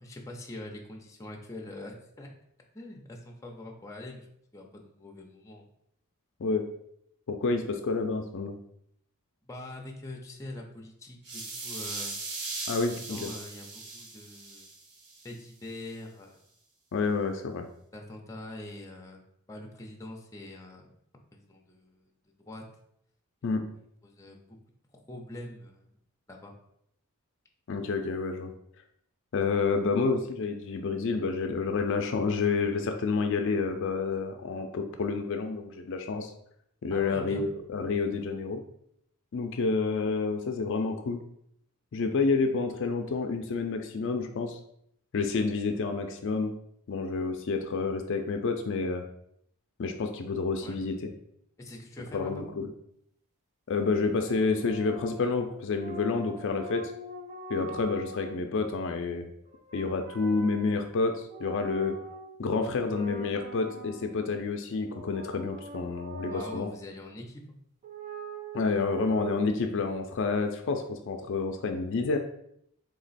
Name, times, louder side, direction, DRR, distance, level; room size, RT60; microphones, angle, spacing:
voice 1, 0.0-2.3 2.7-4.3 4.5-5.7 9.4-12.2 13.1-14.7 15.2-16.4 17.9-19.2 19.5-20.9 21.3-22.1 22.5-22.6 24.0-24.6 24.9-25.9 26.3-26.5 36.9-37.5 50.6-50.8 51.6-52.5 66.3-67.6, left 1 dB, 15° left, 1 dB, 0.6 m, -43 dB
voice 2, 7.3-8.6 12.7-13.3 16.9-17.7 23.4-23.7 27.7-28.5 29.3-36.3 36.8-38.6 39.3-41.2 41.9-44.6 45.1-46.5 46.9-49.0 49.8-51.0 52.1-52.7 53.7-56.9 57.5-59.3 59.7-62.0 62.4-66.7 68.5-72.2, left 4 dB, 55° left, 5 dB, 0.4 m, -29 dB
sound 1, 11.2-15.3, right 3 dB, 75° right, 0.9 m, -39 dB
sound 2, 54.1-58.4 59.5-62.4 62.7-64.3 64.9-66.8 67.8-69.3, right 2 dB, 30° right, 0.4 m, -44 dB
3.8 x 2.9 x 4.1 m, 0.72 s
head